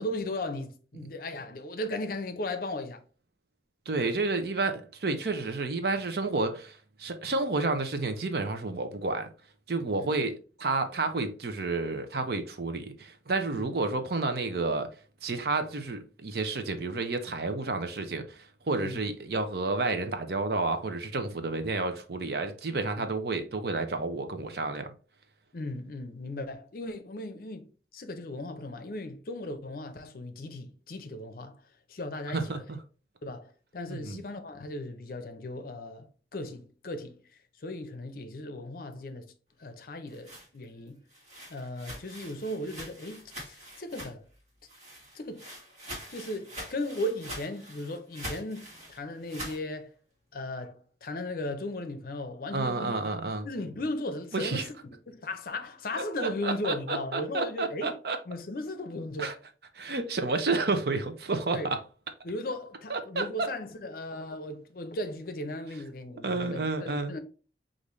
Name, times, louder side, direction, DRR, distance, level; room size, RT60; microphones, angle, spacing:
voice 1, 0.0-3.0 10.0-10.1 13.5-13.7 18.8-19.0 23.0-23.1 25.5-31.6 31.9-32.6 33.2-37.2 37.6-39.3 39.6-41.0 41.5-44.2 45.1-45.5 46.1-49.9 50.3-53.0 53.4-54.7 55.1-58.0 58.3-59.4 61.5-61.7 62.2-67.2, left 1 dB, 55° left, 0.6 m, -37 dB
voice 2, 3.9-9.3 9.7-14.9 15.2-24.9 32.3-32.8 33.9-34.2 52.5-53.5 54.3-54.7 56.2-58.2 59.2-59.3 59.8-61.8 62.9-63.5 66.2-67.1, right 3 dB, 60° right, 0.6 m, -30 dB
sound 1, 39.8-44.4 44.7-49.6, equal, 40° right, 1.6 m, -44 dB
5.2 x 2.6 x 3.1 m
head